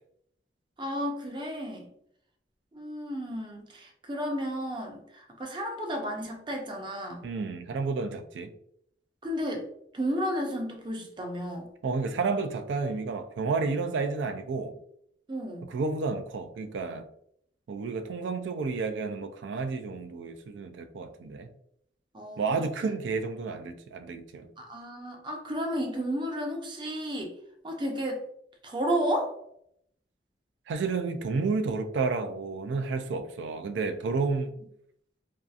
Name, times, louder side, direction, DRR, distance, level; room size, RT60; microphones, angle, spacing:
voice 1, 0.8-1.9 2.7-7.2 9.2-9.7 9.9-11.7 15.3-15.7 22.1-22.7 24.6-27.3 27.6-28.2 28.6-29.3, equal, 25° right, 0.5 m, -32 dB
voice 2, 7.2-8.5 11.8-14.7 15.7-17.1 17.7-21.5 22.4-24.5 30.7-34.6, right 4 dB, 85° right, 0.3 m, -31 dB
2.7 x 2.4 x 2.3 m
head